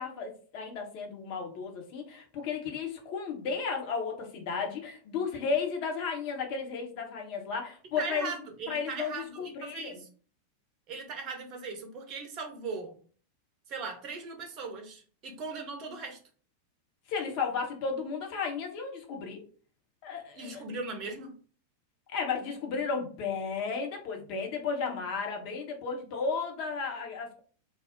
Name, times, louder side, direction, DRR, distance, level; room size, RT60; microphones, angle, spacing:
voice 1, 0.0-8.3 8.7-10.0 17.1-19.4 20.0-20.6 22.1-27.4, left 5 dB, 45° left, 3 dB, 0.8 m, -34 dB
voice 2, 8.0-10.1 10.9-13.0 13.7-16.2 20.3-21.4, right 4 dB, 40° right, 4 dB, 0.7 m, -39 dB
2.4 x 2.0 x 3.6 m, 0.42 s
figure-of-eight pair, 90°, 0 cm